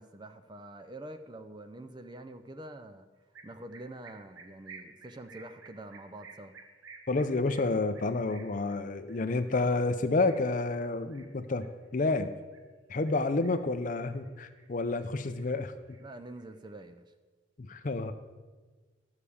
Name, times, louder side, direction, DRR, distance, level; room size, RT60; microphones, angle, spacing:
voice 1, 0.0-3.1 3.4-6.5 16.0-17.1, right 1 dB, 20° right, 8 dB, 0.4 m, -46 dB
sound 1, 3.3-12.7 13.1-13.8 14.1-15.1 15.3-16.7, right 5 dB, 85° right, 1.0 m, -54 dB
voice 2, 7.1-11.7 11.9-12.3 12.9-16.0 17.6-18.1, left 3 dB, 40° left, 10 dB, 0.5 m, -29 dB
12.0 x 4.9 x 7.0 m, 1.4 s
head